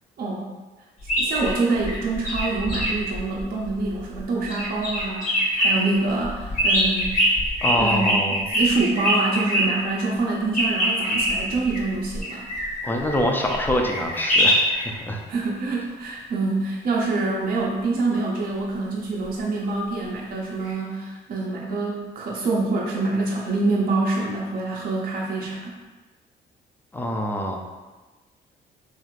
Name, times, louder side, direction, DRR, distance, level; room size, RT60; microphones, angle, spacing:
sound 1, 1.0-4.2 4.5-5.7 6.2-9.6 10.5-14.9 20.7-20.8, equal, 40° left, 1.3 m, -23 dB
voice 1, 1.2-7.3 7.7-12.5 15.3-25.7, right 3 dB, 45° right, -3 dB, 0.5 m, -26 dB
voice 2, 7.6-8.4 12.8-15.2 26.9-27.6, left 1 dB, 10° left, 1 dB, 0.4 m, -25 dB
3.1 x 2.5 x 2.4 m, 1.3 s
cardioid pair, 90°, 20 cm